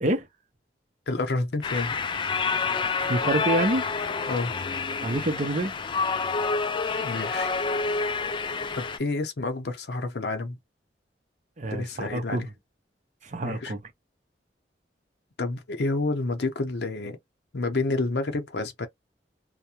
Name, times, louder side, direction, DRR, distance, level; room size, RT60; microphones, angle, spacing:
voice 1, 1.1-2.0 4.3-4.5 7.0-7.5 8.8-10.6 11.7-12.5 13.4-13.7 15.4-17.2 17.5-18.9, left 3 dB, 70° left, 0.7 m, -29 dB
sound 1, 1.6-9.0, left 4 dB, 30° left, 0.3 m, -28 dB
voice 2, 3.0-3.9 5.0-5.7 11.6-12.5 13.2-13.8, right 1 dB, 45° right, 0.7 m, -27 dB
2.4 x 2.1 x 2.9 m
head